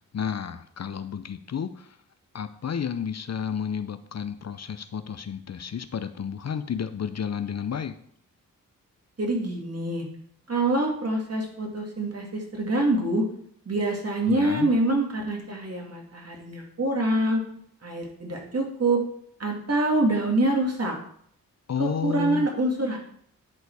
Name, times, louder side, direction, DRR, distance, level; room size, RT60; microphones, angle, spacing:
voice 1, 0.1-2.0 2.3-8.0 14.3-14.7 21.7-22.5, left 7 dB, 50° left, 11 dB, 0.6 m, -31 dB
voice 2, 9.2-10.0 10.5-13.3 13.7-17.4 17.8-19.0 19.4-20.9 21.8-23.0, right 2 dB, 45° right, 0 dB, 2.6 m, -25 dB
10.5 x 4.1 x 4.7 m, 0.65 s
cardioid pair, 45°, 34 cm